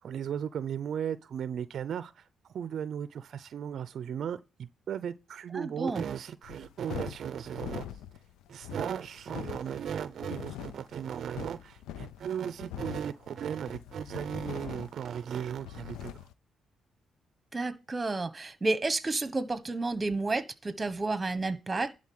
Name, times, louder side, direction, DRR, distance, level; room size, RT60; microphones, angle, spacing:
voice 1, 0.0-7.9 8.5-16.3, right 8 dB, 65° right, 0.5 m, -36 dB
voice 2, 5.5-6.0 17.5-21.9, right 3 dB, 25° right, 1.2 m, -31 dB
sound 1, 6.4-16.3, left 11 dB, 90° left, 0.6 m, -43 dB
11.0 x 3.8 x 7.7 m
cardioid pair, 80°, 0 cm